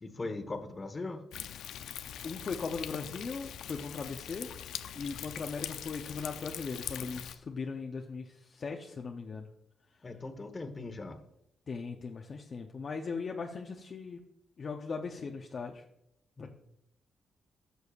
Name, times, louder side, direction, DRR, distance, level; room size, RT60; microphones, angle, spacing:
voice 1, 0.0-1.2 10.0-11.2 16.4-16.5, left 3 dB, 30° left, 7 dB, 1.2 m, -39 dB
Thunder, 1.3-7.4, left 10 dB, 80° left, 0.5 m, -42 dB
voice 2, 2.2-4.5 4.9-9.5 11.7-14.2 14.6-15.8 16.4-16.5, left 4 dB, 45° left, 2 dB, 0.7 m, -38 dB
13.5 x 6.4 x 2.5 m, 0.77 s
cardioid pair, 85°, 0 cm